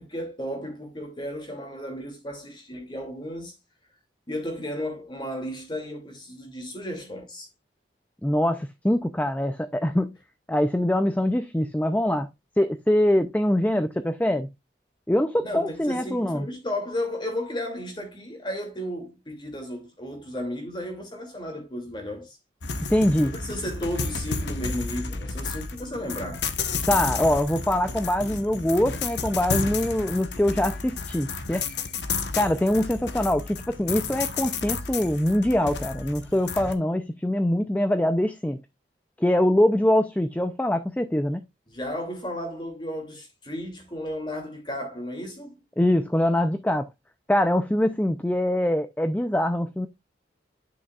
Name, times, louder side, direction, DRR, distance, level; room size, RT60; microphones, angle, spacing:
voice 1, 0.0-3.5 4.3-7.5 15.4-22.4 23.2-26.5 41.7-45.6, left 1 dB, 25° left, 2.5 m, -34 dB
voice 2, 8.2-10.2 10.5-12.3 12.6-14.5 15.1-16.5 22.9-23.3 26.9-31.6 32.4-38.6 39.2-41.4 45.8-46.9 47.3-49.9, left 1 dB, 10° left, 0.4 m, -23 dB
sound 1, 22.6-36.7, left 4 dB, 85° left, 1.1 m, -32 dB
10.5 x 6.2 x 2.4 m
head